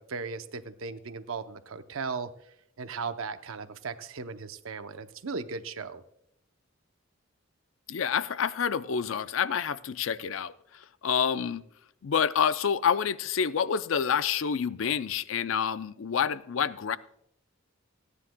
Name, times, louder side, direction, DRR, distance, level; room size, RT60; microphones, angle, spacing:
voice 1, 0.0-2.3 2.8-6.0, right 4 dB, 90° right, 10 dB, 0.7 m, -37 dB
voice 2, 7.9-11.6 12.0-17.0, left 7 dB, 75° left, 15 dB, 0.5 m, -28 dB
29.0 x 9.8 x 2.2 m, 0.76 s
head